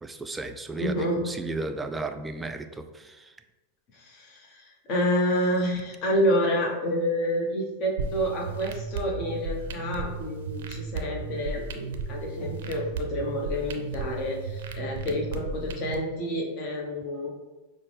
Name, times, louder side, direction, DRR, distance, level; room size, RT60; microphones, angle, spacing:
voice 1, 0.0-3.3, right 2 dB, 15° right, 7 dB, 0.3 m, -34 dB
voice 2, 0.8-1.3 3.9-17.3, equal, 45° left, 0 dB, 0.8 m, -28 dB
sound 1, 8.0-16.0, right 4 dB, 70° right, 0.5 m, -35 dB
5.5 x 2.0 x 3.3 m, 1.1 s
hypercardioid pair, 100°, 0 cm